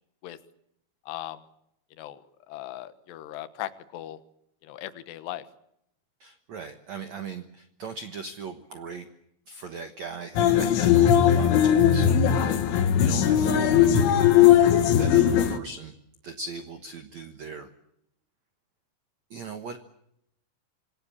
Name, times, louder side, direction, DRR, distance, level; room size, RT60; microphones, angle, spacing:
voice 1, 1.1-1.4 2.0-4.2 4.6-5.4 12.7-12.8, left 13 dB, 70° left, 10 dB, 3.2 m, -38 dB
voice 2, 6.2-9.1 9.5-12.1 12.4-15.9 16.2-17.7 19.3-19.8, right 5 dB, 90° right, 8 dB, 1.5 m, -39 dB
sound 1, 10.4-15.6, left 9 dB, 85° left, 4.0 m, -19 dB
27.0 x 19.5 x 8.6 m, 0.79 s
omnidirectional pair, 5.3 m